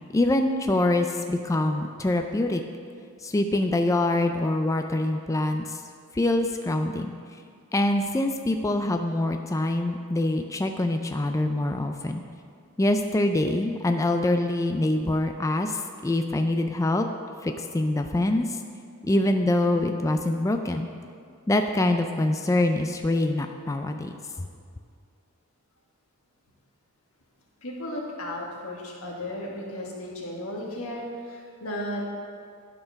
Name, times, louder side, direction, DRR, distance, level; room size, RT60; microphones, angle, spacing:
voice 1, 0.1-2.6 3.2-5.8 6.1-7.1 7.7-12.2 12.8-17.1 17.4-18.6 19.0-20.9 21.5-24.2, left 1 dB, 15° left, 5 dB, 0.3 m, -25 dB
voice 2, 27.6-32.0, left 1 dB, 70° left, -2 dB, 1.7 m, -34 dB
12.0 x 4.5 x 5.8 m, 2.2 s
head